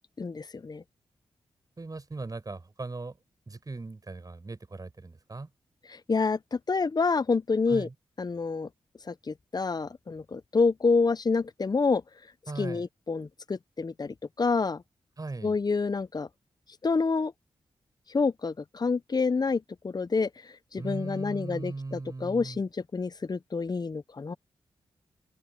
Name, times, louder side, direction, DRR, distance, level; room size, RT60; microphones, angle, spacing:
voice 1, 0.2-0.8 5.9-7.9 8.2-8.7 9.1-12.0 12.6-14.8 15.4-16.3 16.8-17.3 18.1-20.3 20.7-24.3, left 4 dB, 40° left, 0.9 m, -28 dB
voice 2, 1.8-3.2 3.5-5.5 7.7-7.9 12.5-12.8 15.2-15.6 20.8-22.6, right 3 dB, 40° right, 7.7 m, -38 dB
open air
supercardioid pair, 45°, 10 cm